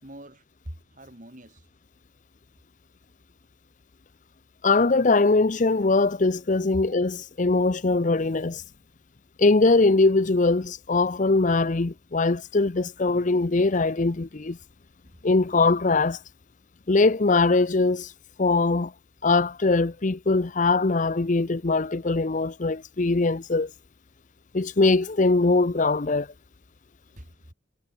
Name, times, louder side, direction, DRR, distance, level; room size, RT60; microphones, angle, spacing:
voice 1, 0.0-1.7 27.2-27.5, right 1 dB, 40° right, 4.7 m, -44 dB
voice 2, 4.6-8.6 9.4-14.6 15.2-16.2 16.9-18.1 18.4-18.9 19.2-23.7 24.5-26.3, left 3 dB, 40° left, 0.6 m, -22 dB
head